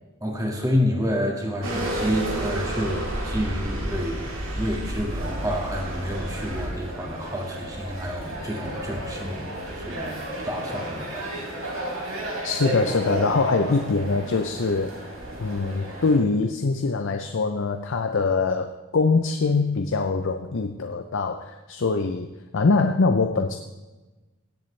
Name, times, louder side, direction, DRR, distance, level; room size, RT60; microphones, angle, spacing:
voice 1, 0.2-9.5 9.8-10.2 10.4-12.0, equal, 15° right, 0 dB, 1.8 m, -29 dB
sound 1, 1.6-6.7, right 1 dB, 65° right, 2.3 m, -30 dB
sound 2, 5.1-16.2, right 1 dB, 85° right, 3.6 m, -34 dB
voice 2, 12.4-15.1 15.4-22.3 22.5-23.6, left 4 dB, 60° left, 6 dB, 0.6 m, -23 dB
17.0 x 7.8 x 3.3 m, 1.1 s
head